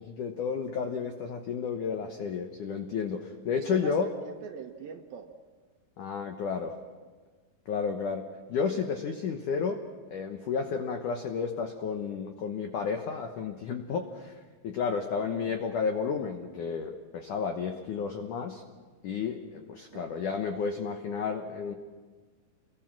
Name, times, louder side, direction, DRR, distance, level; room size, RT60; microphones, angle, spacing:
voice 1, 0.2-4.1 6.0-6.7 7.7-9.8 10.1-18.6 19.0-21.7, left 6 dB, 85° left, 4 dB, 1.8 m, -32 dB
voice 2, 3.6-5.4 15.2-15.5 19.9-20.2, right 6 dB, 70° right, 3 dB, 2.4 m, -43 dB
29.5 x 22.5 x 6.0 m, 1.4 s
omnidirectional pair, 5.6 m